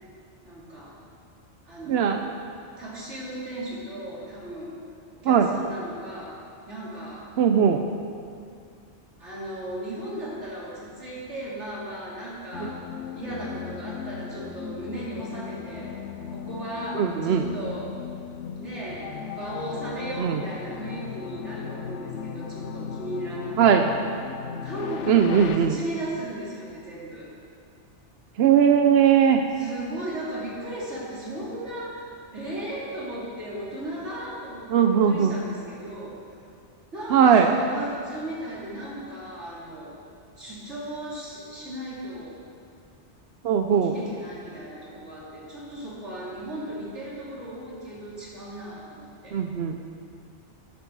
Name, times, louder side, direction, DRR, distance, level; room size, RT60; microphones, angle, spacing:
voice 1, 0.4-1.0 1.6-2.2 2.8-4.8 5.1-6.4 6.7-7.3 9.2-12.8 13.1-15.9 16.3-17.9 18.6-19.1 19.3-24.0 24.6-27.3 29.5-36.2 36.9-40.0 40.4-42.4 43.7-49.4, right 1 dB, 85° right, -7 dB, 3.4 m, -36 dB
voice 2, 1.9-2.2 5.2-5.5 7.4-7.8 12.6-12.7 16.9-17.4 20.2-20.4 23.6-23.9 25.1-25.8 28.4-29.4 34.7-35.4 37.1-37.5 43.4-43.9 49.3-49.8, right 8 dB, 70° right, 5 dB, 0.8 m, -19 dB
sound 1, 12.5-25.6, left 7 dB, 85° left, 1.0 m, -36 dB
13.5 x 9.7 x 4.7 m, 2.4 s
omnidirectional pair, 1.2 m